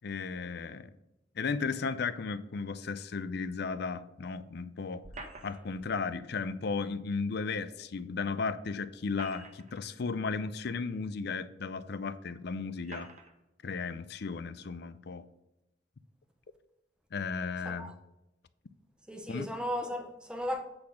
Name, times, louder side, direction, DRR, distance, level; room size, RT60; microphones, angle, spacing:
voice 1, 0.0-0.9 1.3-5.1 5.4-13.1 13.6-15.3 17.1-17.9 19.3-19.5, left 4 dB, 60° left, 0.5 m, -35 dB
sound 1, 5.0-5.9 7.6-7.7 8.9-9.8 10.7-10.8 11.8-11.9 12.8-13.3, right 2 dB, 40° right, 1.1 m, -47 dB
voice 2, 19.1-20.6, equal, 5° right, 0.7 m, -35 dB
8.6 x 4.1 x 6.3 m
head